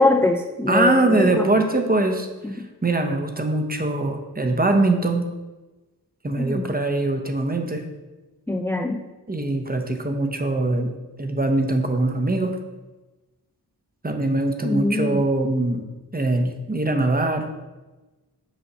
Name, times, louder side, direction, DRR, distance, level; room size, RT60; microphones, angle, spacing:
voice 1, 0.0-1.5 2.4-2.7 6.4-6.8 8.5-9.0 14.6-15.2, left 2 dB, 5° left, 4 dB, 0.3 m, -22 dB
voice 2, 0.7-5.2 6.2-7.8 9.3-10.9 11.2-12.6 14.0-15.8 16.1-17.5, right 2 dB, 20° right, 4 dB, 0.8 m, -22 dB
7.1 x 2.7 x 5.5 m, 1.1 s
cardioid pair, 45°, 40 cm